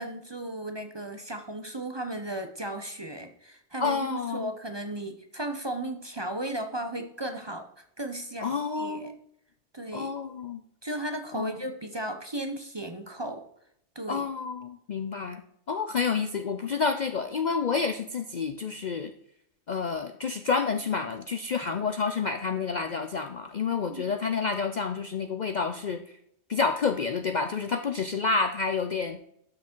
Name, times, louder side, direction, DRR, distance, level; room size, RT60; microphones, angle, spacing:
voice 1, 0.0-9.1 9.7-10.1 10.8-13.5 13.9-14.3 23.9-24.1, right 1 dB, 25° right, 6 dB, 0.8 m, -35 dB
voice 2, 3.8-4.5 8.4-9.2 9.9-10.6 11.3-11.5 14.1-15.4 15.7-19.1 19.7-26.2 26.5-29.2, left 5 dB, 50° left, 8 dB, 0.6 m, -29 dB
12.0 x 6.0 x 4.5 m, 0.73 s
omnidirectional pair, 1.2 m